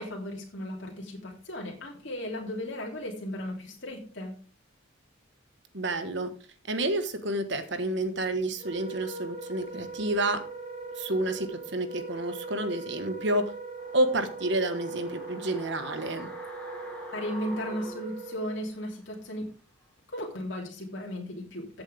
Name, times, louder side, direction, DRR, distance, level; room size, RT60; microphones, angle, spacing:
voice 1, 0.0-4.3 17.1-19.4 20.1-21.8, equal, 60° left, -2 dB, 3.1 m, -36 dB
voice 2, 5.7-6.3 6.7-10.5 11.0-13.5 13.9-16.3, right 1 dB, 60° right, 9 dB, 1.4 m, -29 dB
Wind instrument woodwind instrument, 8.5-18.6, right 3 dB, 35° right, 1.4 m, -41 dB
sound 1, 13.8-18.9 19.2-19.3, left 1 dB, 5° left, 2.3 m, -46 dB
14.5 x 7.9 x 3.5 m, 0.39 s
head